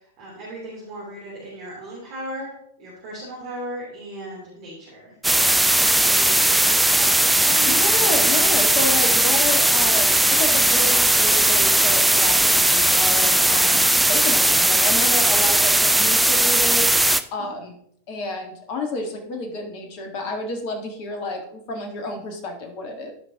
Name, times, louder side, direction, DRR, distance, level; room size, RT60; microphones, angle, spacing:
voice 1, 0.2-5.1 5.8-7.8 17.4-17.5, right 1 dB, 40° right, -5 dB, 3.1 m, -36 dB
sound 1, 5.2-17.2, right 1 dB, 5° right, 0.4 m, -18 dB
voice 2, 7.7-16.9 17.3-17.7 18.1-23.1, left 2 dB, 45° left, 4 dB, 1.6 m, -30 dB
14.5 x 5.3 x 2.9 m, 0.70 s
figure-of-eight pair, 90°, 0 cm